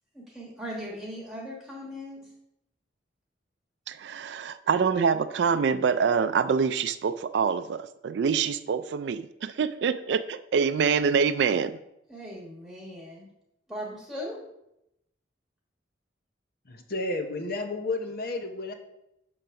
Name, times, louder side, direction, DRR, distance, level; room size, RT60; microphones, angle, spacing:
voice 1, 0.1-2.3 12.1-13.3 13.7-14.4, equal, ahead, -4 dB, 1.4 m, -39 dB
voice 2, 3.9-11.8, right 6 dB, 65° right, 11 dB, 0.3 m, -25 dB
voice 3, 16.7-18.7, left 2 dB, 55° left, 5 dB, 0.9 m, -31 dB
7.7 x 3.8 x 5.7 m, 0.84 s
head